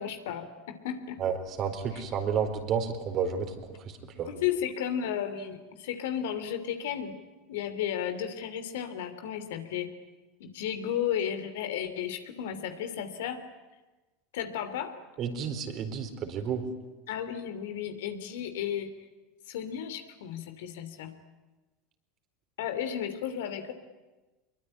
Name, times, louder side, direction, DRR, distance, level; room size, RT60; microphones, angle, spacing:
voice 1, 0.0-1.2 1.9-2.0 4.3-7.2 7.5-9.9 10.4-13.4 14.3-15.0 17.1-19.0 19.5-21.1 22.6-23.7, left 9 dB, 70° left, 8 dB, 2.9 m, -33 dB
voice 2, 1.2-3.7 4.2-4.3 15.2-16.6, right 7 dB, 45° right, 6 dB, 4.4 m, -31 dB
25.5 x 22.5 x 9.9 m, 1.2 s
figure-of-eight pair, 75°, 0 cm